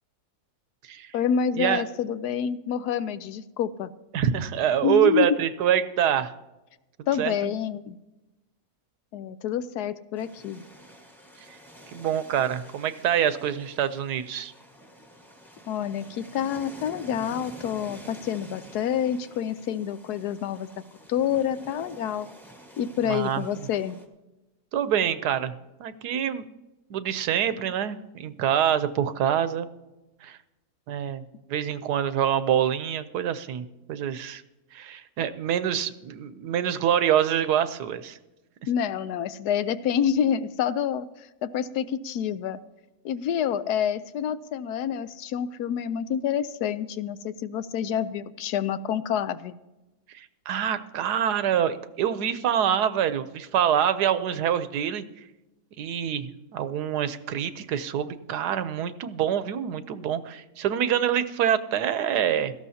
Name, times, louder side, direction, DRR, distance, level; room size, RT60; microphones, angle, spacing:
voice 1, 1.1-3.9 4.8-5.3 7.1-8.0 9.1-10.6 15.7-20.7 21.1-22.3 22.8-24.0 38.7-41.1 41.4-42.6 43.0-49.5, left 8 dB, 80° left, 13 dB, 1.2 m, -28 dB
voice 2, 4.1-6.3 7.2-7.5 11.9-14.5 23.0-23.4 24.7-25.5 25.8-26.5 26.9-29.7 30.2-30.4 30.9-31.2 31.5-34.4 34.7-38.2 50.1-55.0 55.8-62.5, right 9 dB, 85° right, 13 dB, 1.3 m, -26 dB
sound 1, 10.1-24.1, equal, ahead, 1.3 m, -49 dB
17.5 x 14.0 x 2.8 m, 1.0 s
omnidirectional pair, 1.7 m